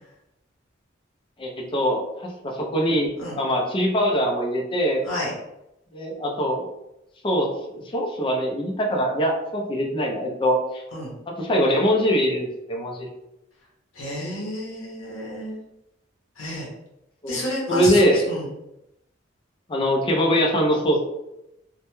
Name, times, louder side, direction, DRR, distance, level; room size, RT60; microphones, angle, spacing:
voice 1, 1.4-5.0 5.9-6.6 7.2-10.8 11.3-13.1 17.2-17.4 17.7-18.2 19.7-21.0, equal, 25° left, 0 dB, 0.5 m, -23 dB
voice 2, 13.9-15.6 16.4-16.7 17.3-18.5, left 1 dB, 90° left, -4 dB, 0.7 m, -30 dB
2.2 x 2.1 x 2.9 m, 0.88 s
head